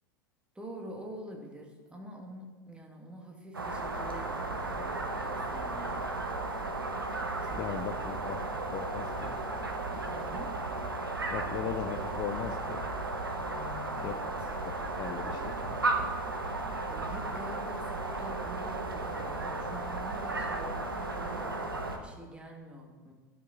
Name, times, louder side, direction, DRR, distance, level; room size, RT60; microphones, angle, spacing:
voice 1, 0.5-5.9 7.4-7.6 8.0-8.3 9.9-10.5 13.4-14.2 16.9-23.1, equal, 10° right, 0 dB, 1.7 m, -46 dB
sound 1, 3.5-22.0, right 2 dB, 85° right, 0.9 m, -34 dB
voice 2, 7.6-8.4 8.7-9.4 11.3-12.8 14.0-14.1 14.6-15.9, left 8 dB, 40° left, 7 dB, 0.5 m, -38 dB
11.0 x 6.0 x 3.8 m, 1.3 s
figure-of-eight pair, 85°, 11 cm